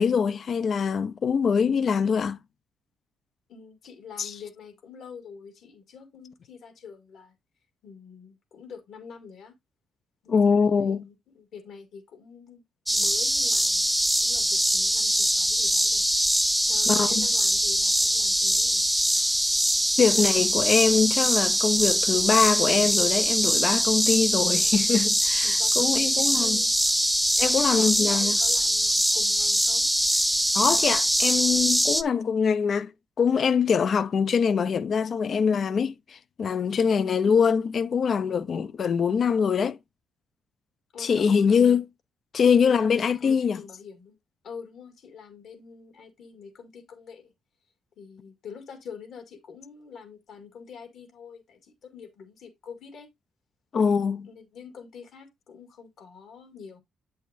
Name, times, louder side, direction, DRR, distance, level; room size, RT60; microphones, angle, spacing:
voice 1, 0.0-2.4 4.2-4.3 10.3-11.0 16.9-17.2 20.0-26.6 27.4-28.4 30.5-32.9 33.2-39.8 41.0-41.9 42.3-43.6 53.7-54.3, left 6 dB, 50° left, 0.5 m, -23 dB
voice 2, 3.5-7.3 7.8-9.5 10.2-12.6 12.9-13.9 14.2-16.0 16.7-18.8 25.4-26.7 27.6-29.9 40.9-41.7 42.6-44.2 44.4-47.3 48.0-53.1 54.3-56.8, left 6 dB, 75° left, 2.1 m, -45 dB
sound 1, 12.9-32.0, right 1 dB, 5° right, 0.4 m, -23 dB
8.2 x 6.3 x 2.5 m
cardioid pair, 90°, 0 cm